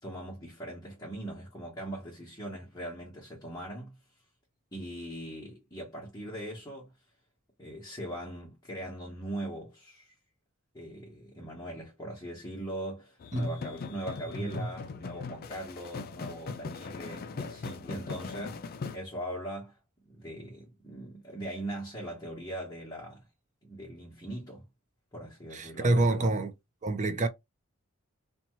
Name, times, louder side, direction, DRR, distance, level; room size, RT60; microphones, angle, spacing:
voice 1, 0.0-4.0 4.7-6.9 7.6-10.1 10.7-19.8 20.0-23.2 23.6-24.7 25.1-26.3, right 1 dB, 15° left, 0.9 m, -40 dB
sound 1, 13.2-19.0, left 4 dB, 45° left, 0.4 m, -40 dB
voice 2, 25.5-26.5 26.8-27.3, right 2 dB, 35° right, 0.5 m, -27 dB
2.8 x 2.2 x 3.0 m
head